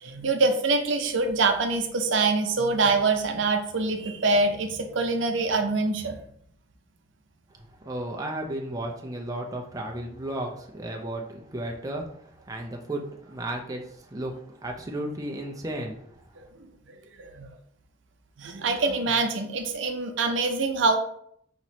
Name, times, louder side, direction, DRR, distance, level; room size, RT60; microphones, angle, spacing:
voice 1, 0.0-6.1 16.4-16.5 16.9-17.5 18.4-21.0, right 3 dB, 70° right, 5 dB, 0.6 m, -25 dB
voice 2, 7.8-12.0 12.5-14.3 14.6-16.1, right 1 dB, 20° right, 1 dB, 0.5 m, -34 dB
5.7 x 3.0 x 2.8 m, 0.66 s
head